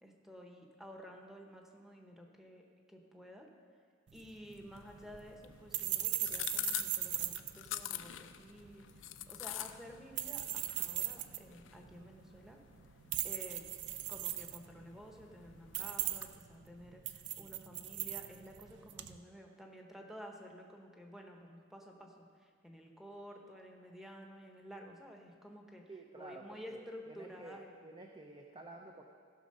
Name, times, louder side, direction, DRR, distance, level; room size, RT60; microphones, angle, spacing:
voice 1, 0.0-3.5 4.1-12.6 13.2-13.6 14.1-25.9 26.2-27.7, equal, ahead, 1 dB, 1.0 m, -52 dB
sound 1, 4.1-19.2, right 13 dB, 60° right, 0.4 m, -40 dB
sound 2, 4.7-16.4, left 13 dB, 70° left, 0.5 m, -47 dB
voice 2, 25.9-29.1, right 2 dB, 25° right, 1 dB, 0.7 m, -52 dB
15.0 x 6.1 x 5.4 m, 2.1 s
head